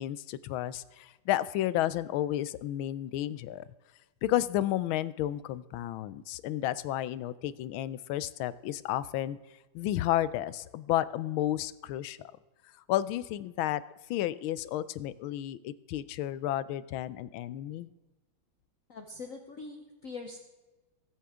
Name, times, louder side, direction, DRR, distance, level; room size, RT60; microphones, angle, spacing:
voice 1, 0.0-3.6 4.2-9.4 9.7-12.3 12.9-13.8 14.1-17.9, left 13 dB, 90° left, 17 dB, 1.4 m, -32 dB
voice 2, 18.9-20.4, left 3 dB, 50° left, 4 dB, 1.2 m, -43 dB
21.5 x 8.5 x 3.6 m, 1.1 s
omnidirectional pair, 2.2 m